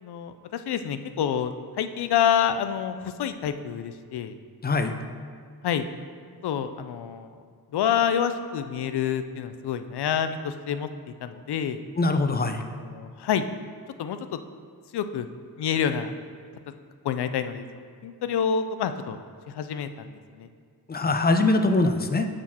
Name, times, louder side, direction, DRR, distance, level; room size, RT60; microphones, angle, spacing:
voice 1, 0.0-4.4 5.6-5.9 6.4-7.3 7.7-11.8 12.6-13.4 14.0-14.4 14.9-15.3 15.6-16.1 17.0-17.7 18.0-19.2 19.5-20.5, left 8 dB, 85° left, 10 dB, 0.5 m, -28 dB
voice 2, 4.6-4.9 12.0-12.6 20.9-22.3, left 2 dB, 25° left, 7 dB, 0.5 m, -22 dB
6.2 x 4.1 x 6.0 m, 2.1 s
wide cardioid pair, 95°, 38 cm